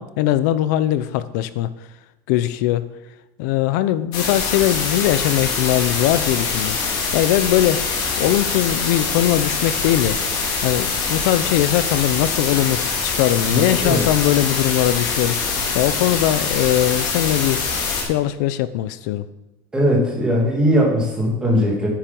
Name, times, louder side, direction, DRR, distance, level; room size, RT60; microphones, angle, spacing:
voice 1, 0.0-1.7 2.3-2.9 3.4-7.8 8.2-10.2 10.6-17.6 18.0-19.3, left 13 dB, 75° left, 14 dB, 0.8 m, -20 dB
sound 1, 4.1-18.0, left 4 dB, 50° left, 2.8 m, -24 dB
voice 2, 13.5-14.0 19.7-21.9, equal, 10° right, -2 dB, 2.8 m, -19 dB
9.9 x 8.9 x 5.4 m, 1.1 s
cardioid pair, 170°, 10 cm